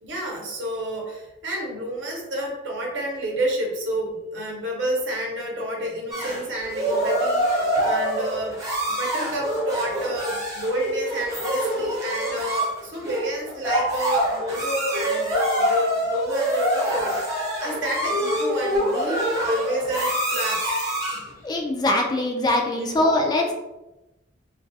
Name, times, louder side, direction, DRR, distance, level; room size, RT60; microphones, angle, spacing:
voice 1, 0.0-7.5 7.8-8.6 8.9-17.2 17.6-20.8 22.7-23.0 23.4-23.5, right 1 dB, 70° right, -2 dB, 0.7 m, -29 dB
sound 1, 6.1-21.3, equal, 15° right, 0.6 m, -25 dB
voice 2, 21.4-23.5, left 1 dB, 20° left, 1 dB, 0.3 m, -22 dB
2.2 x 2.2 x 2.6 m, 0.97 s
head